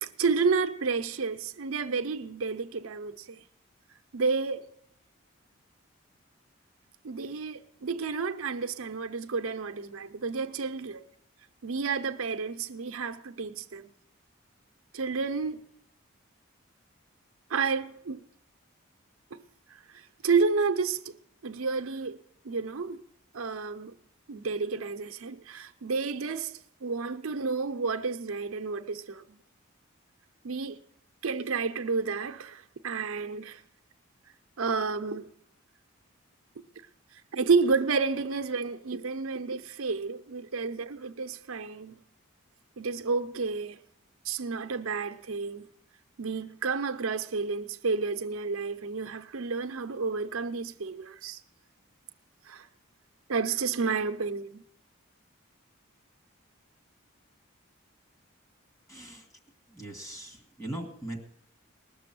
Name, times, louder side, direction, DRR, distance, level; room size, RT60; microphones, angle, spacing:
voice 1, 0.0-3.4 4.1-4.7 7.0-11.1 11.6-13.9 14.9-15.7 17.5-18.3 19.3-19.4 19.7-21.2 21.4-22.2 22.4-23.0 23.3-23.9 24.3-29.4 30.4-30.8 31.2-33.6 34.6-35.3 37.3-42.0 42.8-43.8 44.2-45.7 46.2-51.4 52.5-52.7 53.3-54.6, right 4 dB, 85° right, 0.7 m, -30 dB
voice 2, 58.9-59.3 59.7-61.2, right 1 dB, 15° left, 2.2 m, -40 dB
19.5 x 6.8 x 7.7 m
head